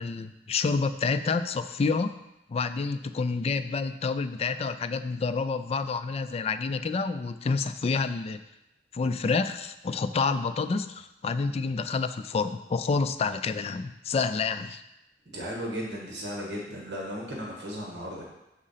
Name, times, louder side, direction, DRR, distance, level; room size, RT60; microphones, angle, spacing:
voice 1, 0.0-2.2 2.5-8.4 8.9-14.8, left 4 dB, 35° left, 10 dB, 0.3 m, -28 dB
voice 2, 15.2-18.2, equal, 70° right, -2 dB, 1.6 m, -36 dB
6.4 x 3.7 x 5.6 m, 0.90 s
head